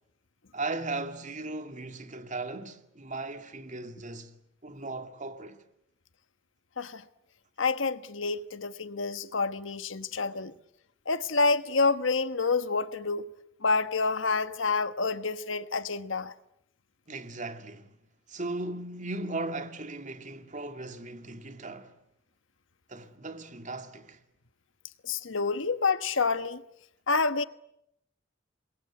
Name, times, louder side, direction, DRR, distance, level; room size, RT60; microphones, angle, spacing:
voice 1, 0.5-4.3 4.6-5.6 17.1-17.9 18.3-21.9 22.9-24.2, right 2 dB, 40° right, 2.4 m, -37 dB
voice 2, 7.6-10.5 11.1-13.2 13.6-16.3 25.0-26.6 27.1-27.4, left 4 dB, 85° left, 1.2 m, -28 dB
27.5 x 22.0 x 9.6 m
head